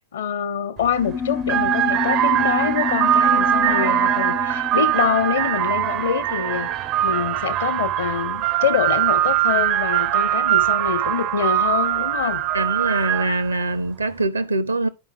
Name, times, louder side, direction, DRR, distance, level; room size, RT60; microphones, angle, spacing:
voice 1, 0.1-12.4, left 8 dB, 65° left, 0.9 m, -25 dB
sound 1, 0.8-1.0 1.4-13.5, right 12 dB, 35° right, 0.5 m, -21 dB
sound 2, 0.9-6.8, left 6 dB, 20° left, 0.4 m, -29 dB
voice 2, 12.5-14.9, right 2 dB, 80° right, 0.8 m, -23 dB
10.5 x 5.2 x 3.0 m
figure-of-eight pair, 90°, 0 cm